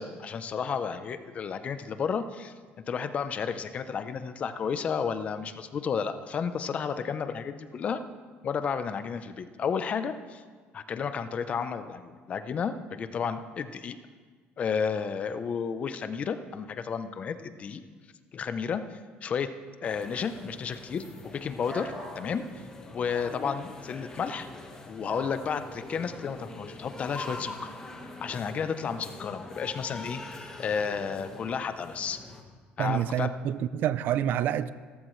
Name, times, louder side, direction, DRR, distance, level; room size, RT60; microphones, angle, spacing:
voice 1, 0.0-2.5 2.9-8.0 8.4-10.4 10.7-14.0 14.6-17.8 18.3-19.5 19.8-21.0 21.3-22.4 22.9-24.5 24.9-27.7 28.2-30.2 30.6-32.2 32.8-33.3, left 6 dB, 35° left, 0.7 m, -32 dB
sound 1, 19.8-32.4, left 2 dB, 20° left, 1.4 m, -44 dB
sound 2, 21.6-22.2 23.1-23.3 25.1-25.4, equal, ahead, 4.3 m, -40 dB
voice 2, 32.8-34.7, right 10 dB, 60° right, 0.4 m, -27 dB
16.5 x 14.5 x 3.2 m
cardioid pair, 135°, 4 cm